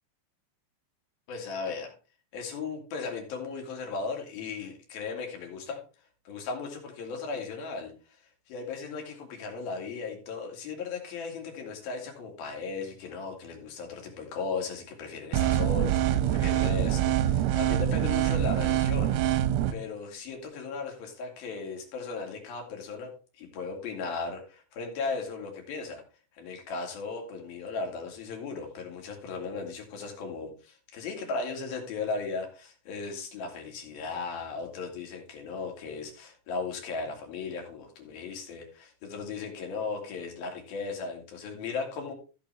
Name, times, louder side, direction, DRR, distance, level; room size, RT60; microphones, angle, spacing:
voice 1, 1.3-1.9 2.3-5.8 6.3-7.9 8.5-19.2 19.7-26.0 26.3-42.1, left 4 dB, 55° left, 2 dB, 3.6 m, -36 dB
sound 1, 15.3-19.7, right 11 dB, 90° right, 3.3 m, -25 dB
15.0 x 6.8 x 3.4 m, 0.35 s
omnidirectional pair, 5.8 m